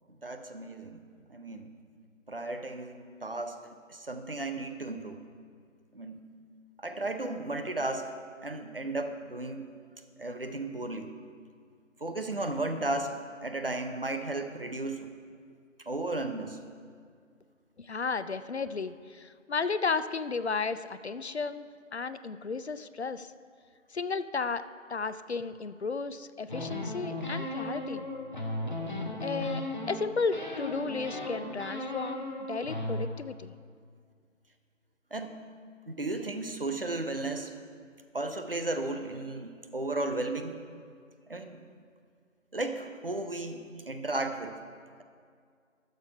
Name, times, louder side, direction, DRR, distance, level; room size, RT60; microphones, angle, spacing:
voice 1, 0.1-1.0 1.3-1.7 2.3-3.6 3.9-5.2 5.9-6.2 6.8-8.1 8.4-9.7 10.2-11.1 12.0-15.1 15.9-16.6 35.1-35.3 35.9-37.5 38.1-40.6 41.3-41.6 42.5-44.6, right 2 dB, 45° right, 6 dB, 0.7 m, -34 dB
voice 2, 17.8-23.3 23.9-28.1 29.2-33.5, left 4 dB, 60° left, 13 dB, 0.5 m, -34 dB
sound 1, 26.5-30.0 30.3-33.1, left 1 dB, 40° left, 1.0 m, -36 dB
13.0 x 6.6 x 4.7 m, 2.1 s
figure-of-eight pair, 165°, 39 cm